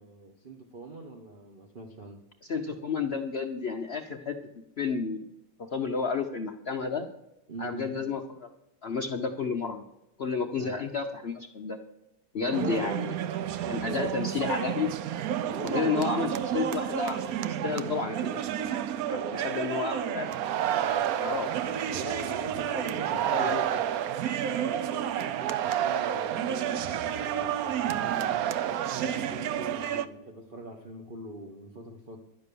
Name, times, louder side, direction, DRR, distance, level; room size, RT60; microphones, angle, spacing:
voice 1, 0.0-2.2 7.5-8.0 10.5-10.8 12.4-13.0 13.6-14.4 15.4-16.4 17.7-18.2 19.1-20.2 20.7-21.2 21.7-23.6 24.6-32.2, right 2 dB, 35° right, 2 dB, 1.0 m, -42 dB
voice 2, 2.4-4.4 4.8-5.2 5.6-7.1 7.6-8.5 8.8-9.8 10.2-11.8 12.3-13.1 13.7-14.9 15.6-18.4 19.1-20.3 21.2-21.8 22.7-22.9 23.3-23.8, left 5 dB, 75° left, 3 dB, 0.5 m, -31 dB
sound 1, 12.5-30.1, right 10 dB, 70° right, 0.9 m, -30 dB
11.5 x 8.7 x 6.8 m, 0.89 s
omnidirectional pair, 2.1 m